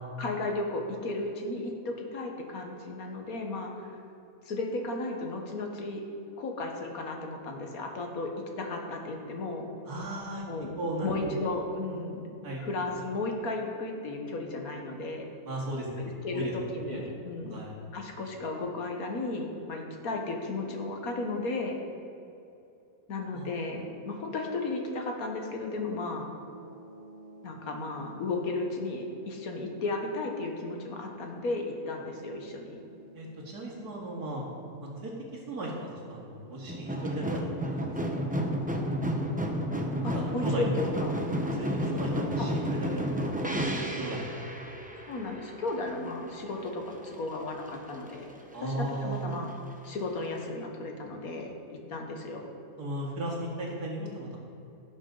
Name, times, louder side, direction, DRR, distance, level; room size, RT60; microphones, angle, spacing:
voice 1, 0.2-3.9 4.5-6.0 6.4-8.3 8.6-9.8 10.5-10.7 11.0-12.2 12.6-15.3 16.0-17.6 17.9-21.8 23.1-26.3 27.4-32.8 40.0-41.3 42.4-42.5 45.1-48.3 48.6-49.5 49.8-52.5, left 2 dB, 65° left, 2 dB, 1.7 m, -34 dB
voice 2, 9.9-10.4 10.8-11.3 12.4-12.6 15.4-16.0 16.3-16.5 16.9-17.1 17.5-17.7 23.3-23.5 33.1-34.4 34.8-35.1 35.5-37.4 37.7-38.3 40.0-40.9 41.5-43.0 43.6-44.8 48.5-49.3 52.8-54.4, right 1 dB, 70° right, -4 dB, 2.6 m, -36 dB
sound 1, 25.7-37.6, right 1 dB, 40° right, 2.3 m, -52 dB
sound 2, 36.7-46.7 47.0-47.7 48.1-48.2, equal, 10° right, 0.4 m, -32 dB
16.5 x 7.1 x 3.9 m, 2.8 s
omnidirectional pair, 1.7 m